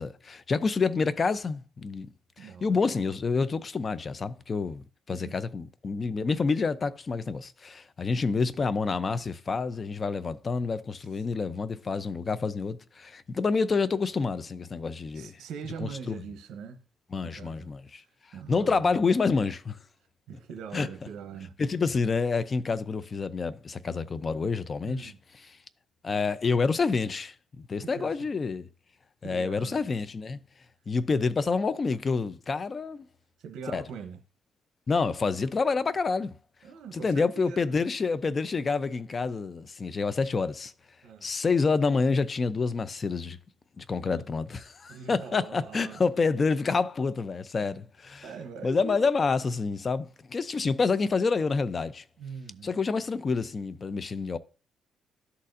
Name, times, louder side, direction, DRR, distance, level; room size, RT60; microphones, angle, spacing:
voice 1, 0.0-2.1 2.4-15.3 15.8-16.1 17.1-18.0 18.5-19.8 20.7-20.9 21.6-25.1 26.0-28.7 29.2-30.4 30.9-33.0 33.7-33.8 34.9-36.4 36.9-40.7 41.2-43.4 43.8-48.2 48.6-52.0 52.6-54.4, left 4 dB, 35° left, 0.5 m, -28 dB
voice 2, 2.4-2.8 5.1-5.4 11.1-11.2 15.1-16.8 17.2-19.0 20.3-21.6 24.8-25.2 27.8-28.2 29.2-29.8 33.4-34.2 36.6-37.9 41.0-41.3 44.0-44.2 44.9-46.0 47.6-47.8 48.2-49.2 52.2-52.8, right 6 dB, 80° right, 0.8 m, -42 dB
12.5 x 4.2 x 2.5 m
cardioid pair, 90°, 0 cm